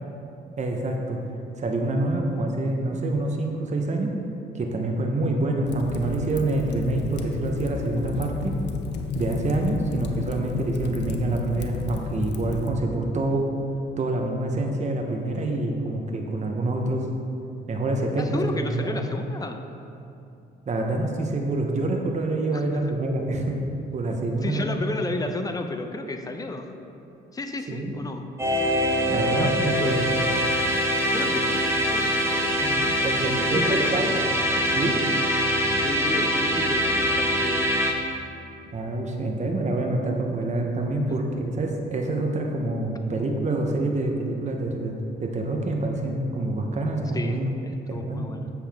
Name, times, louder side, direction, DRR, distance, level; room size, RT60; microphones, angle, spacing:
voice 1, 0.6-1.2 1.6-4.1 4.5-8.5 9.1-13.5 14.0-17.1 17.7-19.0 20.7-23.6 23.9-25.0 27.7-27.9 29.1-30.1 33.0-34.1 34.7-35.0 38.7-44.9 45.2-47.5 47.9-48.2, right 2 dB, 35° right, 2 dB, 0.9 m, -26 dB
Fire, 5.6-12.7, left 4 dB, 60° left, 0.6 m, -31 dB
voice 2, 18.2-19.6 22.5-23.0 24.4-26.8 27.3-28.2 29.1-30.1 31.1-34.1 35.8-37.7 41.1-41.2 47.1-48.5, left 2 dB, 20° left, 5 dB, 0.6 m, -33 dB
sound 1, 28.4-37.9, equal, 10° right, 1.0 m, -23 dB
7.6 x 6.8 x 3.5 m, 2.7 s
cardioid pair, 90°, 20 cm